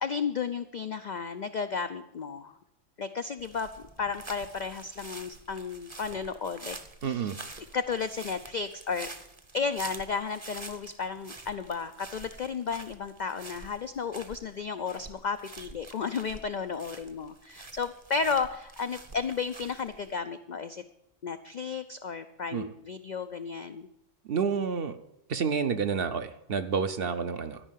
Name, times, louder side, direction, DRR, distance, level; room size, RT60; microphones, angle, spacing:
voice 1, 0.0-2.5 3.0-3.7 4.0-6.8 7.0-7.4 7.7-9.1 9.5-20.8 21.2-23.9, left 5 dB, 65° left, 9 dB, 0.4 m, -33 dB
sound 1, 3.4-20.1, right 3 dB, 25° right, 0.8 m, -47 dB
voice 2, 7.0-7.4 22.5-22.7 24.3-25.0 25.3-27.6, right 6 dB, 55° right, 10 dB, 0.8 m, -29 dB
13.0 x 5.5 x 9.1 m, 0.82 s
omnidirectional pair, 1.3 m